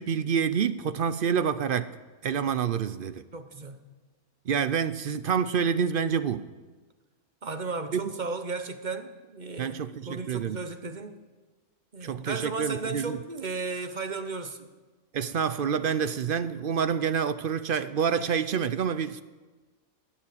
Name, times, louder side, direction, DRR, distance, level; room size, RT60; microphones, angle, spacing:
voice 1, 0.0-2.0 2.2-3.2 4.5-6.5 7.9-8.0 9.6-10.6 12.0-13.2 15.1-19.2, right 7 dB, 60° right, 0.5 m, -27 dB
voice 2, 3.3-3.8 7.4-11.2 11.9-14.7, right 4 dB, 35° right, 1.0 m, -35 dB
21.5 x 7.2 x 8.5 m
omnidirectional pair, 1.5 m